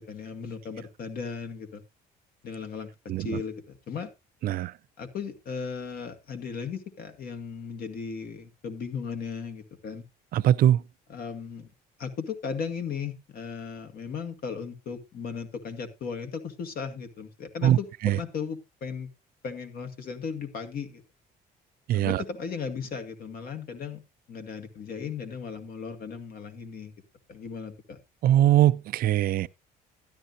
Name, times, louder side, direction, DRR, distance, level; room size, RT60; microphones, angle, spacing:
voice 1, 0.0-1.8 2.4-2.9 3.2-4.1 5.0-10.0 11.1-11.7 12.0-19.1 19.4-21.0 21.9-24.0 24.3-26.9 27.3-28.0, left 6 dB, 60° left, 1.9 m, -36 dB
voice 2, 3.1-3.4 4.4-4.7 10.3-10.8 17.6-17.8 18.0-18.2 21.9-22.2 28.2-29.5, right 12 dB, 60° right, 0.5 m, -21 dB
12.5 x 11.0 x 2.7 m
cardioid pair, 110°, 17 cm